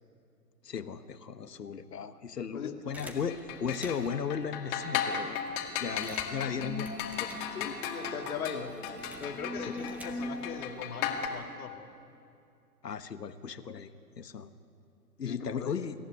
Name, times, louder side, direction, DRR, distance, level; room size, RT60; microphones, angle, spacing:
voice 1, 0.6-5.4 5.8-6.9 7.2-7.3 9.7-9.8 12.8-13.9 14.2-14.5 15.2-15.9, left 6 dB, 80° left, 11 dB, 1.4 m, -36 dB
sound 1, 2.9-4.3 4.9-5.0 5.2-7.9 8.2-10.5, equal, 5° right, 1.5 m, -51 dB
sound 2, 3.3-11.3, left 8 dB, 30° left, 2.1 m, -36 dB
sound 3, 5.7-11.2, left 1 dB, 75° right, 2.8 m, -42 dB
voice 2, 7.5-8.8 9.2-11.9 15.2-15.8, left 6 dB, 60° left, 5 dB, 2.2 m, -39 dB
23.0 x 14.5 x 9.8 m, 2.5 s
hypercardioid pair, 130°, 48 cm